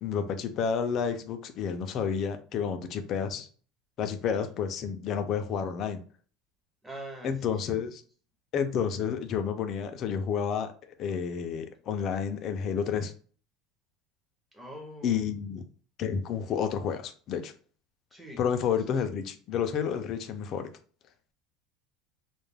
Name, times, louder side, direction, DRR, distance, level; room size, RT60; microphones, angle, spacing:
voice 1, 0.0-3.5 4.0-6.0 7.2-8.0 8.5-10.7 11.0-13.1 15.0-15.6 16.0-17.5 18.4-20.7, left 7 dB, 35° left, 0.4 m, -30 dB
voice 2, 6.8-7.8 14.5-15.2 18.1-19.2, right 1 dB, 10° right, 0.6 m, -45 dB
2.2 x 2.1 x 3.2 m
cardioid pair, 170°, 0 cm